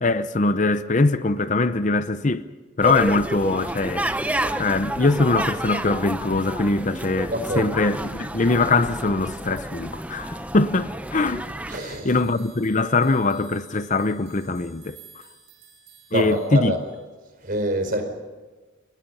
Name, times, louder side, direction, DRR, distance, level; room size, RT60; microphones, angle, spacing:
voice 1, 0.0-2.5 2.8-4.1 4.6-11.5 11.8-15.0 16.1-16.7, left 3 dB, 40° left, 0.7 m, -22 dB
sound 1, 2.8-11.8, right 1 dB, 5° right, 0.8 m, -30 dB
voice 2, 7.3-7.7 11.7-12.2 16.1-16.8 17.4-18.0, right 1 dB, 45° right, 4.8 m, -26 dB
sound 2, 11.8-17.0, right 6 dB, 65° right, 7.2 m, -52 dB
29.0 x 24.0 x 5.6 m
head